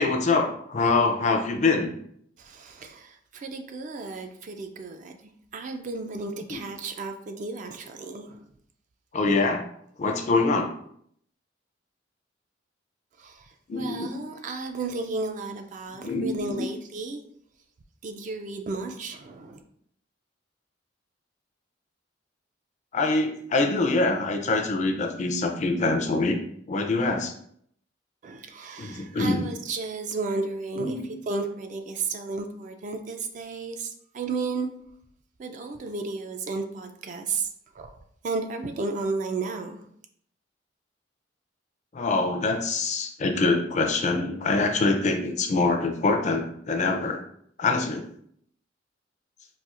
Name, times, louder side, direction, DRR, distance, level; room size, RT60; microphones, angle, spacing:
voice 1, 0.0-1.9 6.5-6.6 9.1-9.6 10.0-10.7 13.7-14.1 15.9-16.7 22.9-26.4 26.7-27.3 28.8-29.5 30.8-31.0 41.9-47.2 47.6-48.0, left 3 dB, 40° left, 4 dB, 0.4 m, -24 dB
voice 2, 2.4-5.2 5.5-8.5 10.0-10.2 13.2-17.2 18.0-19.6 28.2-31.0 31.3-34.7 35.4-37.5 37.7-37.9 38.2-39.8, right 3 dB, 40° right, 6 dB, 0.3 m, -33 dB
4.1 x 2.3 x 2.4 m, 0.67 s
head